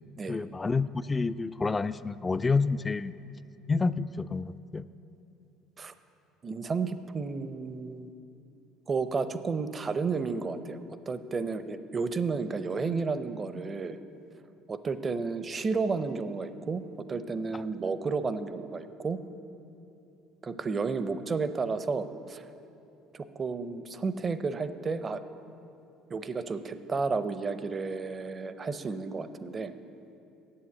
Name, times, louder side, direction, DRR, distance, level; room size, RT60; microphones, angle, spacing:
voice 1, 0.3-3.1 3.7-4.8, left 4 dB, 20° left, 15 dB, 0.3 m, -29 dB
voice 2, 6.4-8.1 8.9-10.8 11.1-14.0 14.7-16.8 17.1-19.2 20.4-22.5 23.1-25.2 26.1-29.7, right 4 dB, 35° right, 12 dB, 0.6 m, -32 dB
8.6 x 7.4 x 8.5 m, 2.8 s
hypercardioid pair, 75°, 0 cm